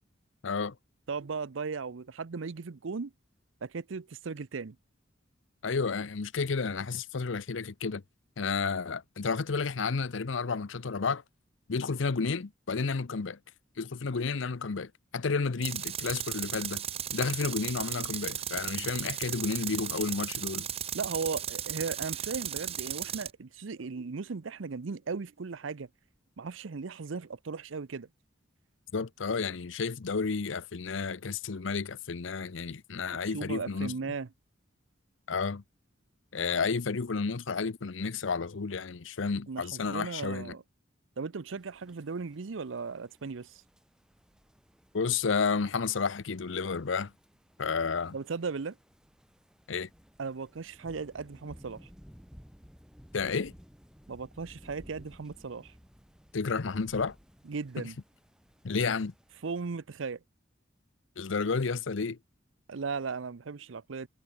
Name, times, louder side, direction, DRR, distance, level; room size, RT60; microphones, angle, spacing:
voice 1, 0.4-0.7 5.6-8.0 8.4-11.2 11.7-13.4 13.8-16.8 17.1-20.7 28.9-33.9 35.3-35.6 36.3-40.5 44.9-47.1 47.6-48.2 49.7-49.9 53.1-53.5 56.3-57.1 57.8-57.9 58.6-59.1 61.2-62.2, left 4 dB, 75° left, 0.7 m, -31 dB
voice 2, 1.1-3.1 3.6-4.8 20.9-25.9 26.4-28.1 33.3-34.3 39.5-40.6 41.2-43.6 48.1-48.8 50.2-51.9 54.1-55.7 57.5-58.0 59.4-60.2 62.7-64.1, right 4 dB, 80° right, 0.6 m, -37 dB
Tools, 15.6-23.3, right 10 dB, 30° right, 0.5 m, -36 dB
sound 1, 41.5-59.7, equal, 5° right, 2.4 m, -57 dB
head